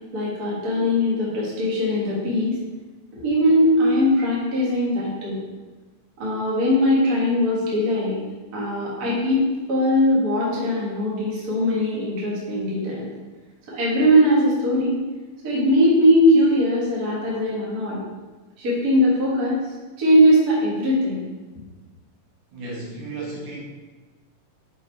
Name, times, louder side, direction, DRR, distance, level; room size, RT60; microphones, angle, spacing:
voice 1, 0.1-2.6 3.1-5.4 6.2-8.2 8.5-9.4 9.7-13.1 13.7-15.0 15.4-18.0 18.6-19.6 20.0-21.2, equal, 40° right, -5 dB, 1.5 m, -20 dB
voice 2, 22.5-23.6, right 2 dB, 70° right, -4 dB, 2.8 m, -33 dB
6.3 x 4.1 x 4.4 m, 1.3 s
omnidirectional pair, 3.8 m